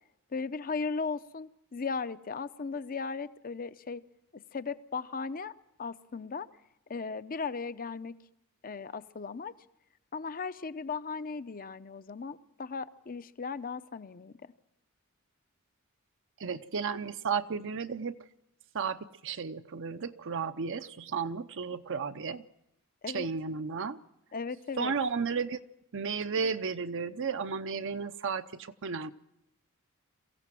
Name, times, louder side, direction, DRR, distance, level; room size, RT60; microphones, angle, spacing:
voice 1, 0.3-4.0 4.3-5.5 5.8-6.5 6.9-8.1 8.6-9.5 10.1-14.5 23.0-23.3 24.3-24.9, left 4 dB, 40° left, 14 dB, 0.7 m, -37 dB
voice 2, 16.4-18.2 18.7-22.4 23.1-24.0 24.8-25.6 25.9-29.1, right 5 dB, 60° right, 10 dB, 0.7 m, -33 dB
23.0 x 15.5 x 7.6 m, 0.87 s
head